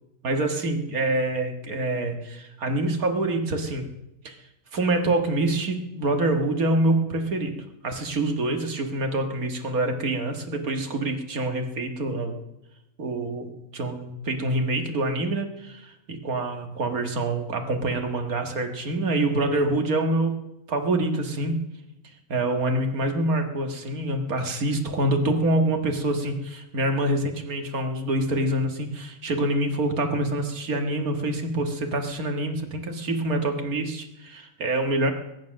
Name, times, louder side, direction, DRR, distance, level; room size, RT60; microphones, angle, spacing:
voice 1, 0.2-3.8 4.2-4.4 4.7-7.5 7.8-12.3 13.0-20.4 20.7-21.6 22.3-35.1, right 2 dB, 90° right, 5 dB, 2.2 m, -26 dB
21.0 x 9.6 x 6.4 m, 0.90 s
omnidirectional pair, 1.5 m